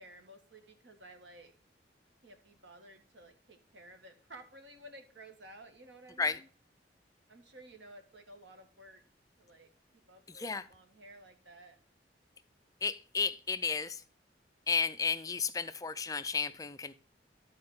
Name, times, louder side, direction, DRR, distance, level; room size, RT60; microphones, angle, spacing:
voice 1, 0.0-1.5 2.2-6.4 7.3-9.0 9.4-9.7 10.1-11.8, right 1 dB, 70° right, 6 dB, 1.6 m, -54 dB
voice 2, 10.3-10.7 12.8-14.0 14.7-16.9, left 5 dB, 20° left, 12 dB, 0.4 m, -33 dB
11.5 x 4.3 x 5.4 m, 0.39 s
head